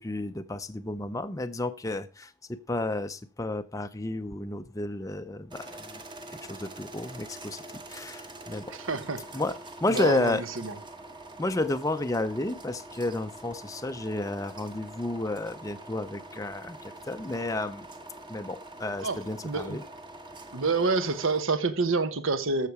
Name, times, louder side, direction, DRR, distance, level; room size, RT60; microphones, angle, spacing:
voice 1, 0.0-6.0 6.3-7.6 7.9-8.6 9.3-10.4 11.4-17.9 18.3-19.8, left 2 dB, 15° left, 0.5 m, -32 dB
sound 1, 5.5-21.4, right 2 dB, 20° right, 1.2 m, -45 dB
voice 2, 8.7-9.3 9.9-10.8 19.0-19.8 20.5-22.7, right 3 dB, 65° right, 1.1 m, -28 dB
14.0 x 6.6 x 4.7 m
head